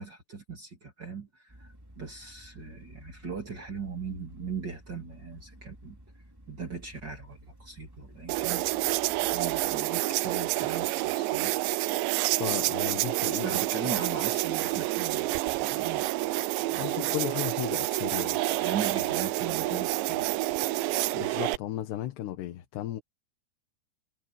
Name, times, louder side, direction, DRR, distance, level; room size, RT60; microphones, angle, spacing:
voice 1, 0.0-6.0 6.5-8.6 9.3-11.5 13.4-16.1 16.7-17.2 18.4-20.3, right 5 dB, 30° right, 3.0 m, -39 dB
sound 1, 1.5-9.8, equal, 5° right, 2.7 m, -53 dB
sound 2, 8.3-21.6, right 18 dB, 85° right, 2.9 m, -28 dB
voice 2, 12.4-13.6 16.8-18.4 19.5-19.6 21.1-23.0, left 13 dB, 75° left, 3.4 m, -35 dB
omnidirectional pair, 5.1 m